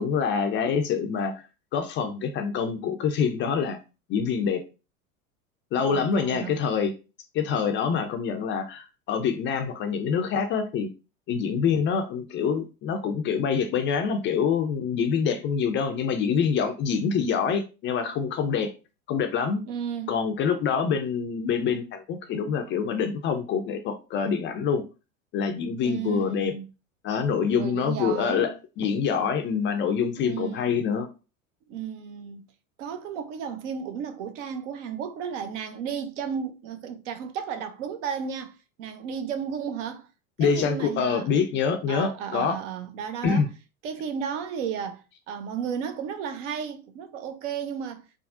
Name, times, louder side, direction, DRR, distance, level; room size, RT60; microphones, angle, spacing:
voice 1, 0.0-1.5 1.7-3.8 4.1-4.6 5.7-6.9 7.3-10.9 11.3-18.7 19.1-19.6 20.1-24.8 25.3-26.5 27.0-31.1 40.4-42.6 43.2-43.5, left 6 dB, 30° left, 0.4 m, -26 dB
voice 2, 5.8-6.6 19.7-20.1 25.8-26.7 27.5-28.5 30.2-30.8 31.7-32.4 32.8-40.1 40.4-41.3 41.9-43.4 43.8-48.0, right 7 dB, 60° right, 0.6 m, -33 dB
3.5 x 2.0 x 2.4 m
hypercardioid pair, 90°, 41 cm